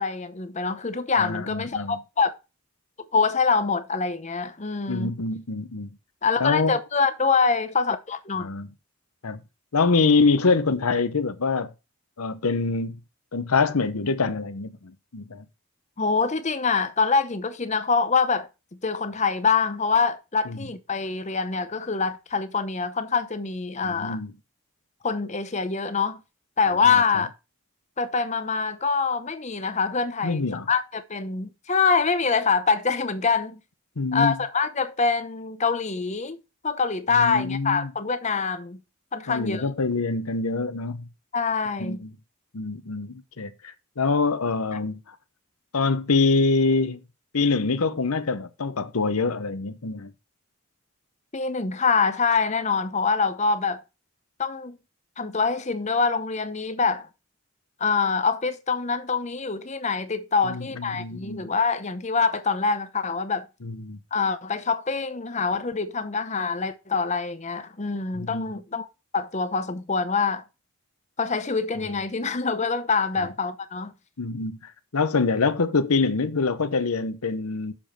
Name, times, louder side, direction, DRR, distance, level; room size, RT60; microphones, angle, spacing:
voice 1, 0.0-2.3 3.1-5.2 6.2-8.5 16.0-24.2 25.0-26.2 26.6-27.3 28.0-33.6 34.1-36.4 36.6-38.8 39.1-39.6 41.3-42.0 51.3-53.8 54.4-54.8 55.2-57.1 57.8-63.5 64.1-68.9 69.1-70.4 71.2-73.9, left 5 dB, 30° left, 0.8 m, -25 dB
voice 2, 1.2-2.0 4.9-5.9 6.4-6.8 8.4-8.7 9.2-9.4 9.7-11.7 12.2-13.0 13.3-14.7 15.1-15.4 20.5-20.6 23.8-24.3 30.2-30.7 34.0-34.4 37.1-37.9 39.3-41.0 41.8-42.1 42.5-45.0 45.7-47.0 47.3-50.1 60.4-61.5 63.6-64.0 68.1-68.5 71.8-71.9 73.2-73.3 74.2-74.6 74.9-77.7, left 4 dB, 85° left, 0.9 m, -25 dB
7.0 x 5.1 x 5.7 m
head